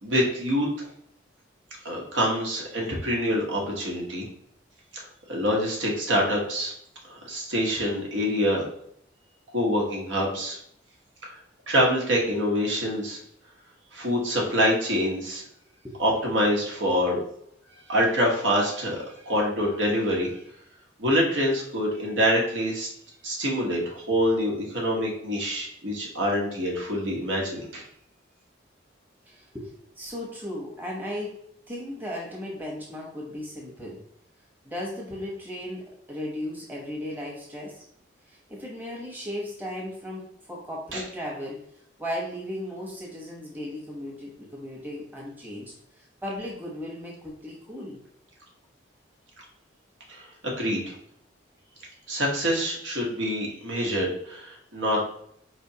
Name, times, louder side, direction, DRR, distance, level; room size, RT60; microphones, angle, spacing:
voice 1, 0.0-0.7 1.8-4.3 4.9-5.0 5.3-6.7 7.0-8.7 9.5-10.6 11.7-13.2 13.9-15.4 16.0-17.2 17.9-20.3 21.0-22.9 23.2-27.8 40.9-41.0 50.1-50.9 52.1-55.0, equal, 75° right, -2 dB, 1.1 m, -25 dB
voice 2, 29.3-29.7 30.0-31.4 31.7-34.0 34.6-37.8 38.3-41.6 42.0-48.0, left 1 dB, 10° right, -4 dB, 0.9 m, -36 dB
4.3 x 3.3 x 2.8 m, 0.69 s
head